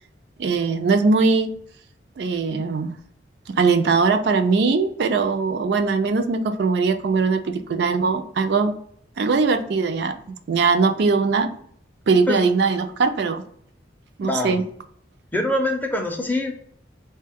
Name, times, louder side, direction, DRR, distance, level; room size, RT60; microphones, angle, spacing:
voice 1, 0.4-1.5 2.2-2.9 3.6-8.7 9.2-10.2 10.5-11.5 12.1-13.4 14.2-14.6, right 4 dB, 65° right, 7 dB, 0.4 m, -20 dB
voice 2, 14.2-14.6 15.3-16.5, left 1 dB, 10° left, 3 dB, 0.4 m, -24 dB
3.7 x 2.2 x 3.4 m, 0.65 s
head